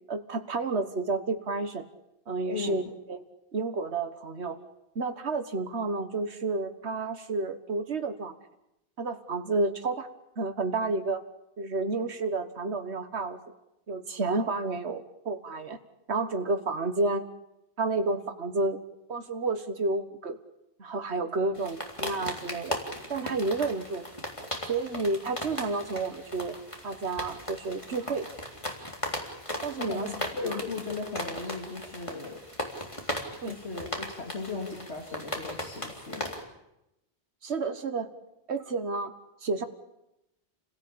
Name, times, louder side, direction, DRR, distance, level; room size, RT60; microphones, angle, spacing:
voice 1, 0.1-1.9 2.3-2.8 3.1-3.2 3.5-4.6 5.0-8.3 9.0-10.1 10.4-11.2 11.6-13.4 13.9-15.8 16.1-17.3 17.8-18.8 19.1-20.4 20.8-22.8 23.1-24.1 24.7-26.6 26.8-28.3 29.6-30.1 30.4-30.6 33.4-33.6 37.4-38.1 38.5-39.1 39.4-39.6, right 3 dB, 80° right, 8 dB, 1.8 m, -30 dB
voice 2, 2.5-2.8 21.5-21.6 29.8-32.4 33.5-36.3, left 4 dB, 85° left, 2 dB, 3.2 m, -37 dB
sound 1, 21.5-36.4, left 1 dB, 30° left, 3.7 m, -37 dB
29.5 x 17.5 x 8.6 m, 0.88 s
omnidirectional pair, 1.1 m